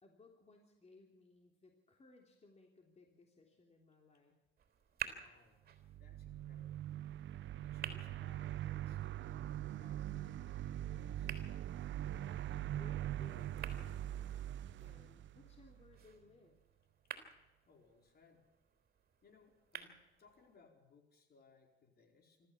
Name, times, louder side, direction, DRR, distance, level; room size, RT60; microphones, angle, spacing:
voice 1, 0.0-4.4 12.7-14.5 14.8-16.6, left 3 dB, 35° left, 1 dB, 3.3 m, -63 dB
sound 1, 4.6-20.6, right 9 dB, 50° right, 3.7 m, -53 dB
voice 2, 5.1-5.6 5.9-6.8 7.6-11.3 17.6-18.4 19.2-22.5, left 4 dB, 55° left, 3 dB, 4.9 m, -67 dB
sound 2, 5.8-16.0, right 12 dB, 70° right, 0.7 m, -42 dB
26.0 x 14.0 x 7.2 m, 1.0 s
cardioid pair, 90°, 20 cm